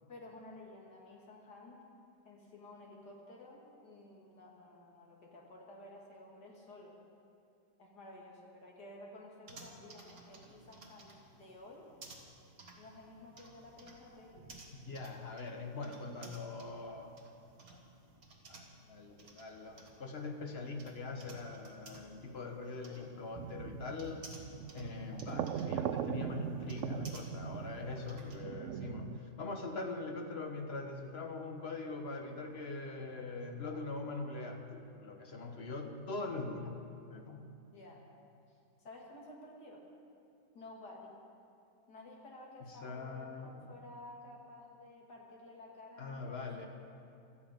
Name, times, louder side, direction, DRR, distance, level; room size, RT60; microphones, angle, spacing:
voice 1, 0.1-1.8 2.2-7.0 7.8-11.9 12.8-14.5 37.7-38.0 38.5-39.9 40.5-41.2 41.9-46.7, left 2 dB, 70° left, -2 dB, 3.0 m, -53 dB
sound 1, 9.5-28.4, right 3 dB, 55° right, 2.1 m, -57 dB
voice 2, 14.7-17.2 17.7-17.8 18.5-24.3 24.7-36.8 37.1-37.5 42.6-43.8 46.0-46.7, left 3 dB, 40° left, 4 dB, 1.3 m, -42 dB
sound 2, 23.3-29.2, right 9 dB, 75° right, 0.7 m, -40 dB
17.0 x 13.5 x 5.3 m, 2.5 s
omnidirectional pair, 1.8 m